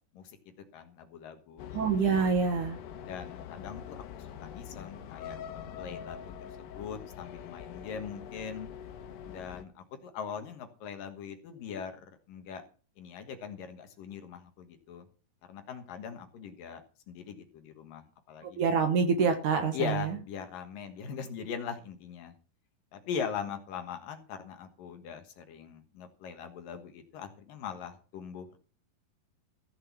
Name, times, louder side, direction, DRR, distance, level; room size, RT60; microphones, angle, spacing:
voice 1, 0.1-1.6 3.0-8.7 9.2-12.6 13.0-15.1 15.5-18.6 19.7-22.3 22.9-28.6, left 7 dB, 65° left, 7 dB, 2.9 m, -41 dB
sound 1, 1.6-9.6, left 8 dB, 90° left, 3.4 m, -44 dB
voice 2, 1.7-2.8 18.4-20.2, right 5 dB, 60° right, 7 dB, 2.5 m, -26 dB
15.5 x 6.7 x 7.2 m, 0.38 s
omnidirectional pair, 4.6 m